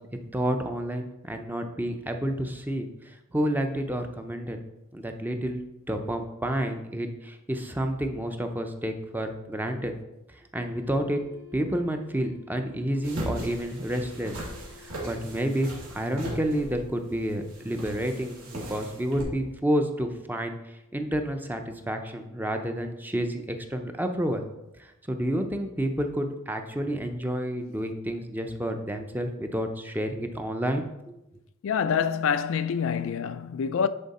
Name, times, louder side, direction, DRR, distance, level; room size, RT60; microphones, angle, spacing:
voice 1, 0.3-4.6 4.9-9.9 10.5-11.2 11.5-14.4 14.8-15.7 15.9-24.5 24.8-31.1, equal, 10° right, 0.6 m, -30 dB
sound 1, 10.5-21.3, left 8 dB, 55° right, 3.1 m, -53 dB
sound 2, 13.0-19.2, right 1 dB, 85° right, 2.5 m, -38 dB
voice 2, 31.6-33.9, left 7 dB, 65° left, 0.3 m, -26 dB
10.0 x 4.4 x 4.2 m
head